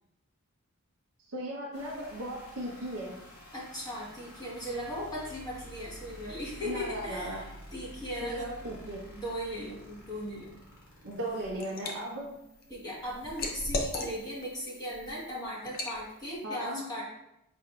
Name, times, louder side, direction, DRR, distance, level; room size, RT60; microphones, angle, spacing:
voice 1, 1.3-3.2 6.6-7.4 8.2-9.0 11.0-12.3 16.4-16.8, right 1 dB, 65° right, -4 dB, 0.8 m, -36 dB
sound 1, 1.7-16.5, equal, 65° left, 1.2 m, -51 dB
voice 2, 3.5-8.5 9.1-10.6 12.7-17.0, equal, 20° left, -6 dB, 1.2 m, -38 dB
Liquid, 11.1-11.9 12.4-14.5 14.9-15.1 15.7-16.0, left 2 dB, 45° left, 0.5 m, -35 dB
5.6 x 2.6 x 2.3 m, 0.83 s
head